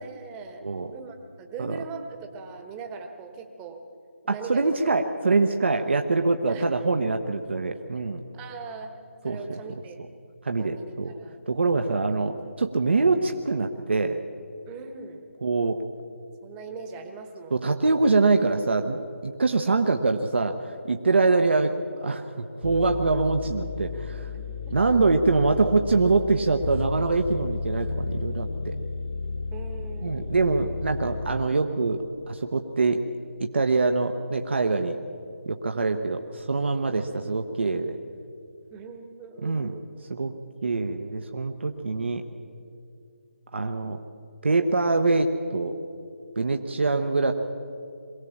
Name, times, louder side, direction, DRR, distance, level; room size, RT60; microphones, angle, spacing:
voice 1, 0.0-0.6 0.9-3.8 4.2-5.0 5.2-5.3 6.5-6.7 8.3-9.0 9.2-10.0 10.6-11.5 11.7-12.0 14.7-15.2 16.4-17.6 24.3-25.1 29.5-30.5 38.7-39.8, right 4 dB, 15° right, 5 dB, 1.3 m, -41 dB
voice 2, 4.3-8.2 9.2-9.4 10.4-11.1 11.5-14.2 15.4-15.8 17.5-20.6 20.9-21.7 22.0-24.3 24.7-28.8 30.0-33.0 33.4-35.0 35.5-38.0 39.4-39.7 40.1-40.3 40.6-42.2 43.5-44.0 44.4-45.7 46.4-47.3, right 3 dB, 55° right, 5 dB, 1.0 m, -24 dB
sound 1, 22.6-31.5, left 4 dB, 40° left, 1.6 m, -33 dB
23.0 x 16.5 x 7.3 m, 2.5 s
figure-of-eight pair, 155°, 7 cm